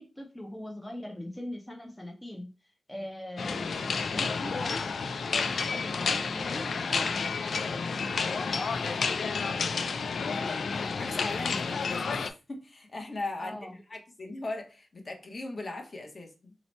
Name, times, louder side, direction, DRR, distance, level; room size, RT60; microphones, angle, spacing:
voice 1, 0.0-4.9 5.3-7.4 13.4-13.7, left 1 dB, 10° left, 0.5 m, -41 dB
sound 1, 3.4-12.3, left 5 dB, 70° left, 0.3 m, -30 dB
voice 2, 8.7-9.2 10.3-13.6 13.9-16.5, left 2 dB, 40° left, 0.8 m, -39 dB
2.9 x 2.1 x 4.1 m
wide cardioid pair, 100°, 0 cm